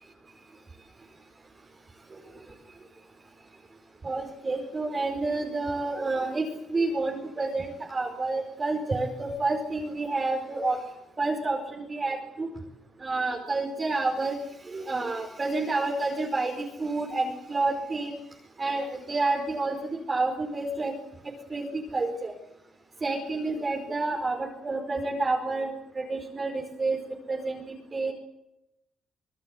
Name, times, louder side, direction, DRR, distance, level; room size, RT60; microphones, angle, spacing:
voice 1, 4.0-10.8 11.2-12.5 13.0-14.4 14.7-18.1 18.6-20.9 21.5-22.3 23.0-27.0 27.3-27.6 27.9-28.1, right 3 dB, 30° right, 1 dB, 4.9 m, -29 dB
26.5 x 20.0 x 8.1 m, 0.86 s
cardioid pair, 90°, 0 cm